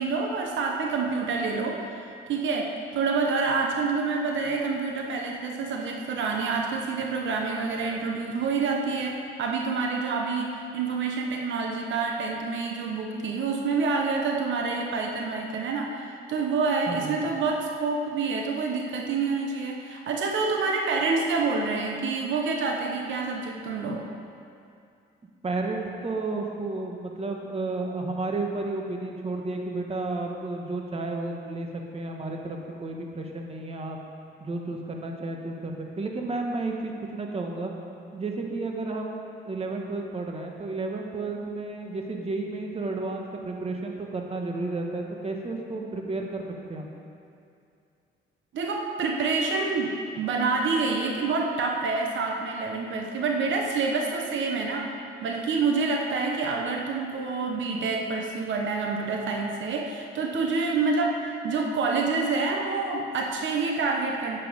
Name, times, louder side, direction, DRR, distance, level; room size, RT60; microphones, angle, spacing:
voice 1, 0.0-24.0 48.5-54.9 55.2-64.4, right 4 dB, 70° right, 1 dB, 1.1 m, -27 dB
voice 2, 16.9-17.3 25.4-31.7 31.9-34.0 34.4-37.7 38.1-39.2 39.4-46.4 46.7-46.9, right 3 dB, 30° right, 1 dB, 1.5 m, -32 dB
10.5 x 8.7 x 5.2 m, 2.5 s
cardioid pair, 90°, 20 cm